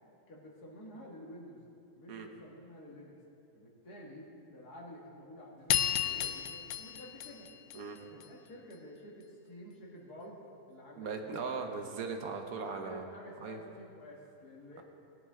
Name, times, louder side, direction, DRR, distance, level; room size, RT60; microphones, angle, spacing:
voice 1, 0.3-1.6 1.9-3.2 3.5-7.5 8.0-11.5 12.6-14.8, equal, 90° left, -3 dB, 2.5 m, -50 dB
sound 1, 5.7-8.3, left 10 dB, 65° left, 0.9 m, -33 dB
voice 2, 11.0-13.0 13.4-13.6, right 4 dB, 70° right, 4 dB, 1.5 m, -38 dB
19.0 x 9.5 x 3.7 m, 2.7 s
omnidirectional pair, 1.6 m